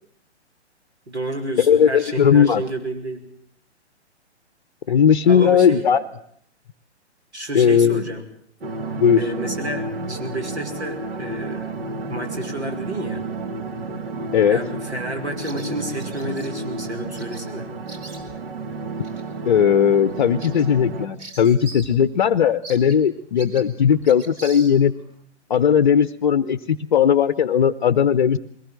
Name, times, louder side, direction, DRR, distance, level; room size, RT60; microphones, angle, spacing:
voice 1, 1.1-3.3 4.9-5.0 5.3-5.9 7.3-8.3 9.1-11.7 12.1-13.2 14.5-17.7, right 1 dB, 70° right, 4 dB, 5.5 m, -30 dB
voice 2, 1.6-2.6 4.9-6.0 7.5-8.0 9.0-9.2 14.3-14.6 19.5-24.9 25.5-28.4, left 8 dB, 45° left, 14 dB, 0.8 m, -17 dB
sound 1, 8.6-21.1, right 2 dB, 55° right, 2.4 m, -31 dB
Bird vocalization bird call bird song, 15.4-16.5 17.2-17.4 17.7-18.5 19.0-19.2 19.7-19.8 20.1-22.0 22.2-22.3 22.6-25.1, right 2 dB, 30° right, 3.2 m, -42 dB
21.5 x 19.0 x 7.6 m, 0.66 s
figure-of-eight pair, 125°, 35 cm